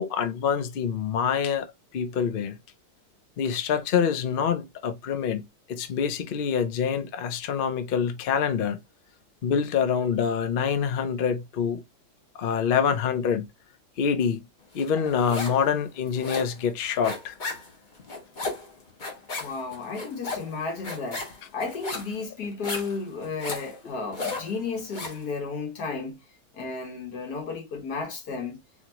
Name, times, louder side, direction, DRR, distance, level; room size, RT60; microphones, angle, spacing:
voice 1, 0.0-1.7 1.9-2.6 3.4-5.4 5.7-8.8 9.4-11.8 12.3-13.4 14.0-14.4 14.7-17.3, left 7 dB, 85° left, 0.4 m, -26 dB
sound 1, 14.8-15.7 15.9-25.2, left 3 dB, 35° left, 1.1 m, -35 dB
voice 2, 19.4-21.2 21.5-26.2 26.5-28.6, left 4 dB, 65° left, 1.8 m, -33 dB
4.4 x 2.8 x 2.8 m
omnidirectional pair, 1.8 m